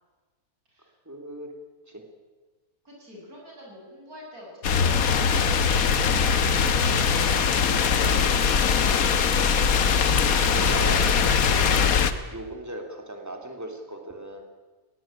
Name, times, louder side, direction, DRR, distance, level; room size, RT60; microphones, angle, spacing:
voice 1, 1.0-1.5 1.9-2.0 10.3-11.1 12.3-14.4, right 1 dB, 10° right, 3 dB, 3.1 m, -37 dB
voice 2, 2.8-8.7, left 1 dB, 70° right, -2 dB, 8.0 m, -46 dB
sound 1, 4.6-12.1, left 6 dB, 70° left, 1.6 m, -21 dB
20.5 x 17.5 x 9.0 m, 1.3 s
omnidirectional pair, 1.6 m